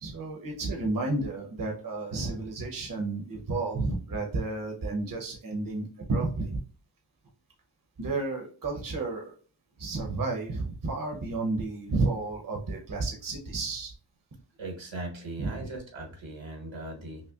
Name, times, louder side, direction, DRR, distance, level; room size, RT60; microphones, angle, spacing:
voice 1, 0.0-6.5 8.0-9.3 9.8-13.9 15.4-15.5, right 3 dB, 45° right, 0 dB, 0.9 m, -31 dB
voice 2, 14.6-17.2, right 2 dB, 75° right, 1 dB, 1.3 m, -39 dB
5.5 x 2.1 x 2.3 m, 0.39 s
wide cardioid pair, 80°, 46 cm